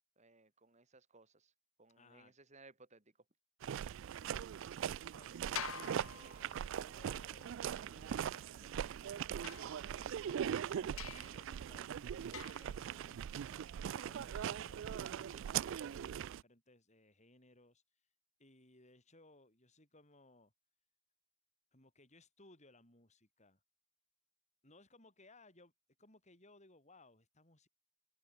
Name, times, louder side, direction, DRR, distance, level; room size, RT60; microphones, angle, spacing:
voice 1, 0.2-1.5 1.8-3.0, right 3 dB, 35° right, 3.2 m, -62 dB
voice 2, 2.0-2.4 4.0-4.1 5.1-5.4 5.9-9.4 9.9-17.8 18.4-20.5 21.7-23.6 24.6-25.7 26.0-27.7, left 2 dB, 35° left, 7.0 m, -64 dB
sound 1, 3.6-16.4, right 9 dB, 60° right, 0.3 m, -41 dB
sound 2, 5.6-6.9 9.4-10.3 11.0-11.5 12.3-12.8, left 8 dB, 70° left, 1.3 m, -47 dB
open air
head